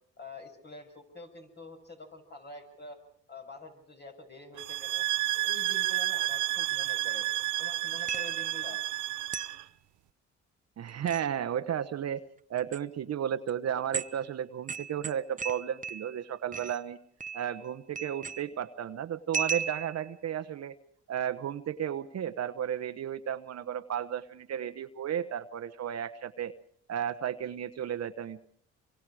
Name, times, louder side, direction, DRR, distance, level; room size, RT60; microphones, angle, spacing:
voice 1, 0.2-3.0 3.3-5.0 5.3-7.3 7.6-8.8, left 2 dB, 35° left, 4 dB, 6.5 m, -47 dB
sound 1, 4.6-9.6, right 16 dB, 80° right, 0.8 m, -31 dB
sound 2, 8.1-8.5 9.3-9.6 10.9-11.3 12.6-12.8 13.5-13.6 13.9-14.2 14.7-16.2 16.5-16.8 17.2-17.7 18.0-18.6 19.3-20.1, right 6 dB, 25° right, 0.8 m, -36 dB
voice 2, 10.8-12.2 12.5-17.0 17.3-20.7 21.1-26.5 26.9-28.5, right 9 dB, 55° right, 10 dB, 1.1 m, -33 dB
27.0 x 24.0 x 4.9 m, 0.63 s
cardioid pair, 90°, 30 cm